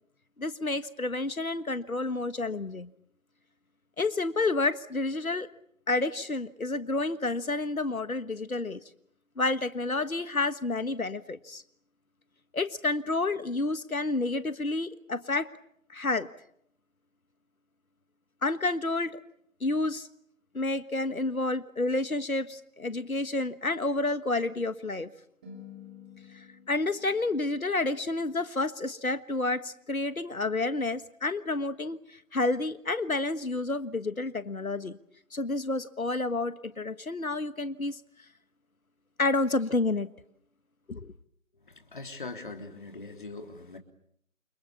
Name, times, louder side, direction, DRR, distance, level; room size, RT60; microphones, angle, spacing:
voice 1, 0.4-2.9 4.0-5.5 5.9-8.8 9.4-11.6 12.5-15.5 15.9-16.3 18.4-19.2 19.6-20.1 20.5-25.1 26.3-35.0 35.3-38.0 39.2-40.1 40.9-41.1, left 2 dB, 85° left, 12 dB, 1.5 m, -30 dB
sound 1, 25.4-29.7, left 6 dB, 10° right, 2.6 m, -53 dB
voice 2, 41.7-43.8, left 3 dB, 35° left, 5 dB, 3.5 m, -41 dB
29.5 x 25.0 x 7.2 m, 0.70 s
figure-of-eight pair, 170°, 41 cm